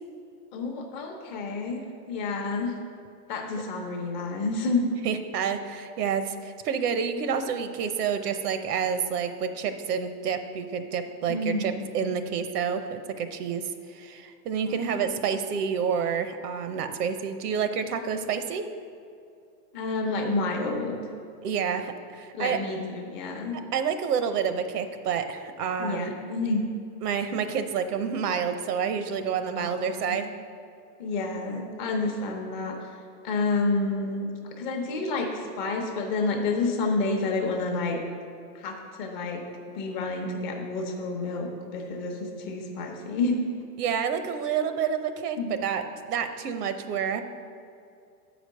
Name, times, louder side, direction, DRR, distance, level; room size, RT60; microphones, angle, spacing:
voice 1, 0.5-2.7 3.3-4.9 11.3-12.2 14.6-15.0 19.7-21.0 22.3-23.6 25.8-26.7 29.6-30.2 31.0-32.9 33.2-34.3 34.6-38.0 38.5-39.4 39.7-43.4 45.4-45.5, left 3 dB, 30° left, 1 dB, 0.7 m, -29 dB
voice 2, 5.0-13.6 13.9-18.7 21.4-22.6 23.5-26.1 27.0-30.3 43.8-45.8 46.1-47.2, right 7 dB, 70° right, 9 dB, 0.8 m, -29 dB
7.4 x 5.1 x 6.4 m, 2.4 s
supercardioid pair, 165°, 48 cm